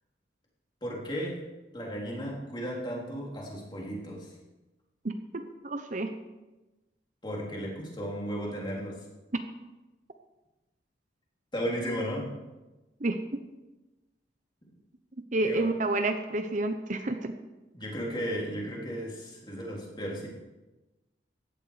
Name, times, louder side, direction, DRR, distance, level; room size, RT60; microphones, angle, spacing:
voice 1, 0.8-1.4 1.7-4.3 7.2-9.1 11.5-12.3 15.4-15.7 17.7-20.3, equal, 25° left, -3 dB, 3.6 m, -35 dB
voice 2, 5.0-6.1 13.0-13.2 15.3-17.3, right 2 dB, 40° right, 7 dB, 0.8 m, -29 dB
16.0 x 11.5 x 5.0 m, 1.1 s
head